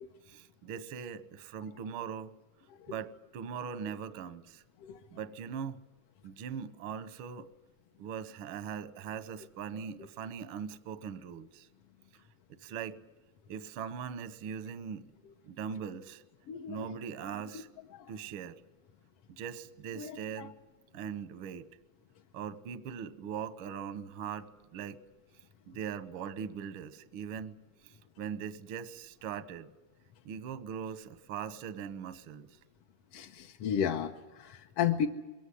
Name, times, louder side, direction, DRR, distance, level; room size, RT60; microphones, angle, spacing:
voice 1, 0.3-2.3 2.9-4.6 5.1-5.8 6.2-7.5 8.0-11.7 12.6-13.0 13.5-15.1 15.4-16.2 16.7-17.7 18.1-18.6 19.3-20.6 20.9-21.7 22.3-25.0 25.7-27.6 27.8-29.7 30.2-32.6, right 7 dB, 70° right, 14 dB, 1.2 m, -40 dB
voice 2, 16.5-16.9 17.9-18.1 20.0-20.5 33.1-35.1, left 8 dB, 75° left, 4 dB, 1.4 m, -33 dB
22.5 x 17.0 x 9.8 m, 1.2 s
omnidirectional pair, 3.7 m